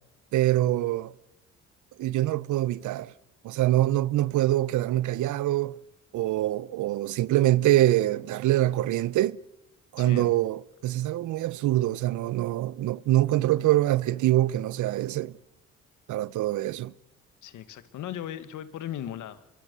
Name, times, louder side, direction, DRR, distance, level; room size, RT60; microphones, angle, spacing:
voice 1, 0.3-1.1 2.0-3.1 3.4-5.8 6.1-9.4 9.9-15.4 16.1-16.9, right 15 dB, 80° right, 0.7 m, -24 dB
voice 2, 10.0-10.3 17.4-19.4, left 11 dB, 80° left, 1.8 m, -37 dB
24.0 x 23.0 x 6.9 m
cardioid pair, 90°, 30 cm